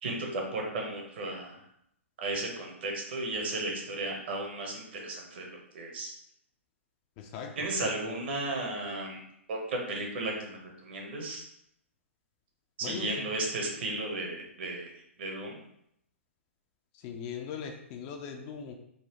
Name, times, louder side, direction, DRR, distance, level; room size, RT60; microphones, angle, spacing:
voice 1, 0.0-1.6 2.2-6.1 7.6-9.2 9.5-11.4 12.8-14.9 15.2-15.6, right 2 dB, 50° right, 1 dB, 1.0 m, -34 dB
voice 2, 7.2-7.9 12.8-13.3 16.9-18.7, left 7 dB, 30° left, 3 dB, 0.4 m, -40 dB
3.9 x 2.1 x 3.1 m, 0.74 s
figure-of-eight pair, 120°, 7 cm